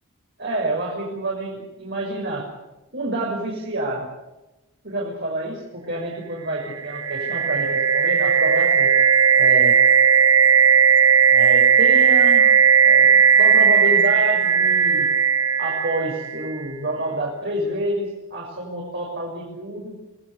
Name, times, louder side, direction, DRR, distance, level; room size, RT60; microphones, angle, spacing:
voice 1, 0.4-2.5 2.9-4.1 4.8-8.9 9.3-9.8 11.3-12.5 12.8-15.1 15.6-20.0, right 1 dB, 55° right, -2 dB, 6.1 m, -28 dB
sound 1, 6.7-16.5, right 7 dB, 90° right, 1.6 m, -16 dB
25.5 x 19.5 x 8.2 m, 1.0 s
head